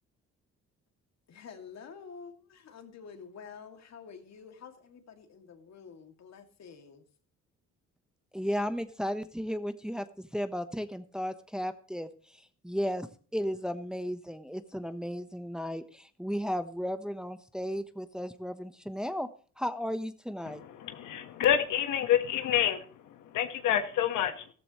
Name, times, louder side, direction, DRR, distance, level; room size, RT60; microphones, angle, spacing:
voice 1, 1.3-7.0, left 6 dB, 60° left, 5 dB, 2.4 m, -49 dB
voice 2, 8.3-19.3 19.6-20.6, equal, ahead, 9 dB, 1.0 m, -35 dB
voice 3, 20.5-24.5, left 10 dB, 85° left, 7 dB, 1.4 m, -28 dB
14.0 x 14.0 x 3.1 m, 0.41 s
cardioid pair, 90°, 30 cm